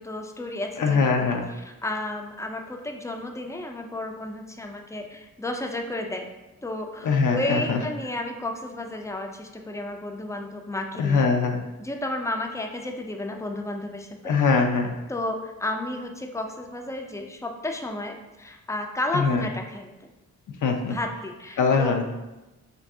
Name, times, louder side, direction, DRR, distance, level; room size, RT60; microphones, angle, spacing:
voice 1, 0.0-6.3 6.6-11.2 11.8-14.3 15.1-20.1 20.8-22.0, left 1 dB, 10° left, 3 dB, 0.4 m, -32 dB
voice 2, 0.8-1.5 7.0-7.8 11.0-11.6 14.2-14.9 19.1-19.4 20.6-21.0 21.6-22.0, left 5 dB, 60° left, 3 dB, 0.5 m, -22 dB
2.6 x 2.6 x 3.5 m, 1.0 s
supercardioid pair, 45°, 35 cm